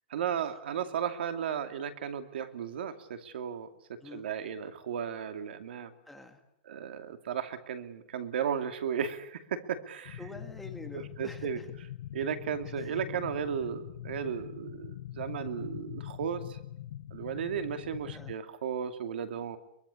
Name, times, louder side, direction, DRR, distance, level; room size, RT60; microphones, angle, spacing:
voice 1, 0.1-3.7 4.1-5.9 6.7-10.2 10.9-11.6 12.1-16.6 17.1-19.6, right 8 dB, 80° right, 8 dB, 2.5 m, -35 dB
voice 2, 6.1-6.4 10.2-11.7 12.7-12.9 18.1-18.4, left 2 dB, ahead, 4 dB, 1.9 m, -47 dB
sound 1, 10.0-18.3, left 12 dB, 65° left, 0.9 m, -43 dB
23.5 x 23.0 x 8.4 m, 0.76 s
supercardioid pair, 170°, 6 cm